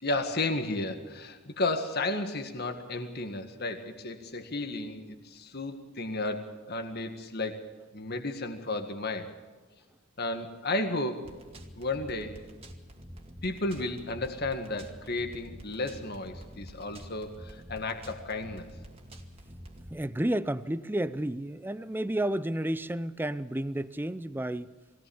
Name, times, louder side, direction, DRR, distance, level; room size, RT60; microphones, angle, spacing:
voice 1, 0.0-7.7 7.9-9.3 10.2-11.3 11.8-12.4 13.4-18.7, left 2 dB, 50° left, 6 dB, 1.9 m, -33 dB
sound 1, 11.2-19.9, equal, 30° right, 2.2 m, -47 dB
voice 2, 19.9-24.7, right 1 dB, 10° right, 15 dB, 0.6 m, -31 dB
21.5 x 18.0 x 7.2 m, 1.3 s
head